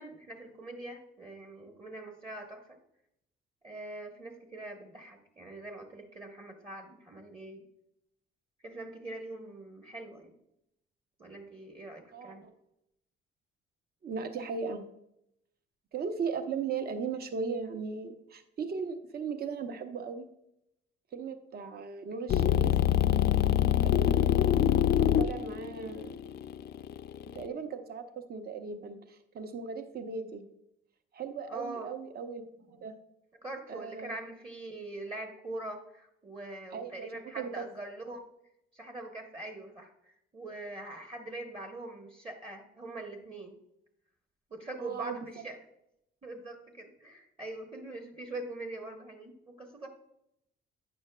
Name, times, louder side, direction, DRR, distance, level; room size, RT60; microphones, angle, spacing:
voice 1, 0.0-2.6 3.6-7.6 8.6-10.3 11.2-12.5 31.5-31.9 33.4-38.2 38.7-43.6 44.5-45.6 46.2-49.9, right 2 dB, 25° right, 3 dB, 1.0 m, -43 dB
voice 2, 12.1-12.5 14.0-14.8 15.9-20.3 21.1-22.7 23.9-26.2 27.3-30.4 31.1-32.4 32.7-32.9 33.7-34.2 36.7-37.1 37.3-37.7 44.8-45.2, right 5 dB, 50° right, 8 dB, 0.8 m, -37 dB
sound 1, 22.3-27.4, left 11 dB, 55° left, 0.4 m, -25 dB
8.9 x 6.2 x 2.2 m, 0.80 s
cardioid pair, 90°, 20 cm